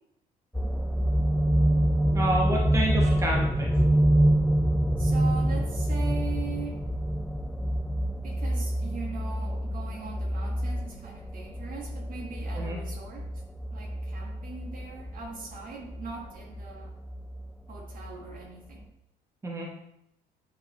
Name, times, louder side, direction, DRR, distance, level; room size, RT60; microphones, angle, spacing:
sound 1, 0.5-18.4 18.8-18.9, right 1 dB, ahead, 0.4 m, -27 dB
voice 1, 2.1-3.8 12.5-12.8 19.4-19.7, right 1 dB, 20° right, -2 dB, 1.1 m, -29 dB
voice 2, 5.0-6.8 8.2-13.3 13.7-16.9 17.7-18.9, right 5 dB, 55° right, 0 dB, 1.6 m, -41 dB
9.2 x 3.8 x 3.0 m, 0.82 s
cardioid pair, 110°, 17 cm